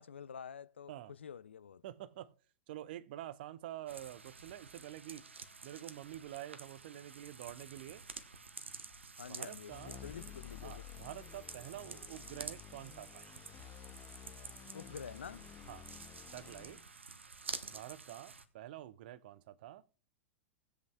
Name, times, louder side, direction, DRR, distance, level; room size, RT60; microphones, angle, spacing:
voice 1, 0.0-1.8 9.2-10.8 14.7-15.5, left 7 dB, 70° left, 0.5 m, -48 dB
voice 2, 1.8-2.3 2.7-5.2 5.6-8.0 9.3-10.0 10.6-13.3 15.7-15.9 16.3-16.8 17.7-19.8, right 13 dB, 50° right, 0.7 m, -47 dB
sound 1, 3.9-18.4, right 4 dB, 75° right, 0.9 m, -50 dB
sound 2, 8.1-8.5 8.9-9.3 9.7-10.1 10.5-10.9 11.3-11.7 12.1-12.5 12.9-13.1, left 7 dB, 10° left, 3.1 m, -67 dB
sound 3, 9.7-16.8, left 11 dB, 30° left, 0.7 m, -53 dB
20.0 x 8.0 x 2.3 m
figure-of-eight pair, 95°, 6 cm